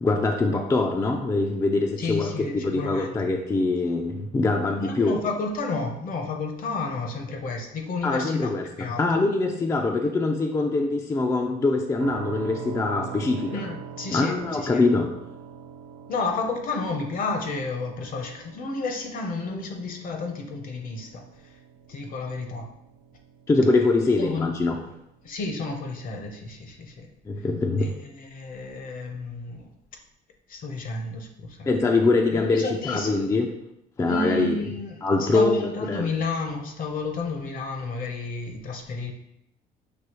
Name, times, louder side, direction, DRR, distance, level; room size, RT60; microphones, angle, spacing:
voice 1, 0.0-5.2 8.0-13.7 14.1-15.1 23.5-24.8 27.3-27.9 31.7-33.5 34.0-34.6 35.0-36.1, left 3 dB, 20° left, 3 dB, 0.3 m, -23 dB
voice 2, 2.0-3.3 4.8-9.1 13.4-14.8 16.1-21.6 21.9-22.7 24.2-24.5 25.2-27.1 27.8-29.7 30.5-31.8 32.3-33.1 34.1-39.1, left 3 dB, 55° left, 4 dB, 0.8 m, -31 dB
sound 1, 12.0-25.7, right 8 dB, 80° right, 0.5 m, -43 dB
6.1 x 2.7 x 3.0 m, 0.81 s
cardioid pair, 110°, 17 cm